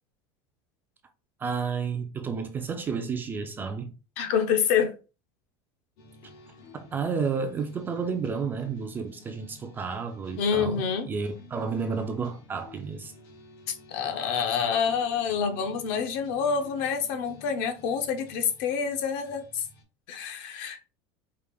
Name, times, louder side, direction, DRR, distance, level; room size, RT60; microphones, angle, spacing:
voice 1, 1.4-3.9 6.7-13.1, right 5 dB, 15° right, 0.3 m, -31 dB
voice 2, 4.2-5.0 10.4-11.1 13.7-19.6 20.1-20.8, left 7 dB, 55° left, 0.7 m, -27 dB
sound 1, 6.0-19.8, left 3 dB, 90° left, 1.7 m, -52 dB
4.8 x 2.5 x 3.4 m
cardioid pair, 180°, 13 cm